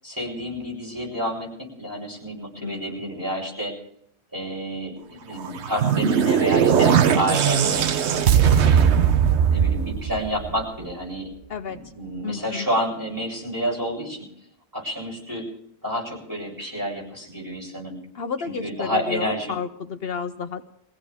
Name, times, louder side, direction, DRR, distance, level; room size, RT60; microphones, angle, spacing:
voice 1, 0.0-3.7 4.3-7.9 8.3-8.9 9.5-11.3 11.7-14.2 14.7-15.5 15.8-18.0 18.4-19.5, equal, 20° right, -3 dB, 7.7 m, -29 dB
voice 2, 2.6-2.9 11.5-11.8 12.2-12.7 18.1-20.7, left 6 dB, 65° left, 8 dB, 1.0 m, -31 dB
sound 1, 5.4-10.8, right 8 dB, 85° right, 1.1 m, -19 dB
23.5 x 16.5 x 3.5 m, 0.69 s
omnidirectional pair, 1.1 m